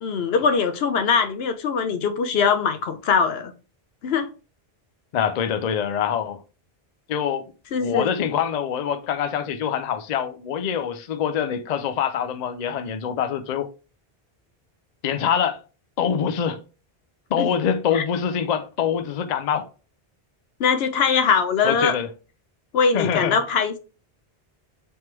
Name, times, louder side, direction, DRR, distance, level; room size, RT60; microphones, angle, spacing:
voice 1, 0.0-3.5 4.0-4.3 7.7-8.1 17.4-17.5 17.9-18.0 20.6-21.9 22.7-23.8, left 6 dB, 80° left, 0.9 m, -21 dB
voice 2, 5.1-6.4 7.1-7.5 7.8-13.7 15.0-15.6 16.0-16.6 17.3-19.7 21.6-22.1 22.9-23.4, left 8 dB, 55° left, 0.5 m, -24 dB
3.4 x 3.0 x 4.4 m
omnidirectional pair, 1.0 m